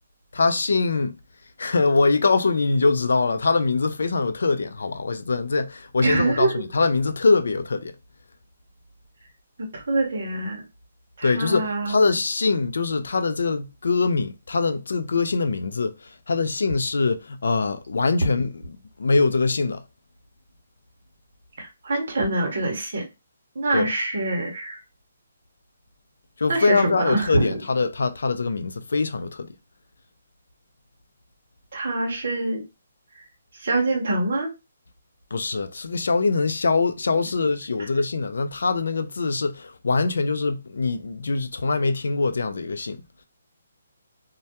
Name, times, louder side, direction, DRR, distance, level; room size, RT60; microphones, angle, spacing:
voice 1, 0.3-1.1 1.6-7.9 11.2-18.6 19.0-19.8 23.7-23.9 26.4-29.5 35.3-43.0, left 3 dB, 70° left, 0.3 m, -23 dB
voice 2, 6.0-6.7 9.7-10.6 11.2-11.9 21.6-23.1 23.5-24.8 26.5-27.6 31.7-32.6 33.5-34.5, right 2 dB, 45° right, 0.7 m, -25 dB
2.2 x 2.1 x 2.8 m
hypercardioid pair, 180°, 0 cm